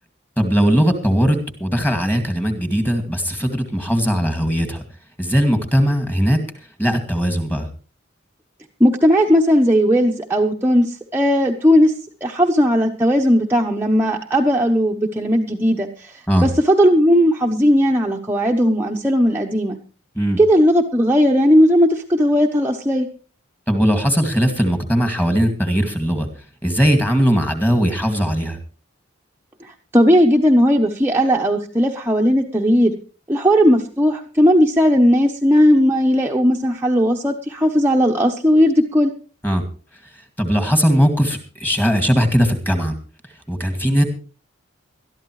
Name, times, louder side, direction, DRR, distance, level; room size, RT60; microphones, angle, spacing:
voice 1, 0.4-4.8 5.2-6.4 6.8-7.7 16.3-16.5 20.2-20.4 23.7-26.3 26.6-28.6 39.4-39.6 40.4-42.9 43.5-44.0, equal, 10° left, 6 dB, 2.1 m, -19 dB
voice 2, 8.8-11.9 12.2-19.8 20.4-23.1 29.6-32.9 33.3-39.1, equal, 10° right, 0 dB, 1.0 m, -16 dB
20.5 x 13.0 x 3.2 m, 0.38 s
head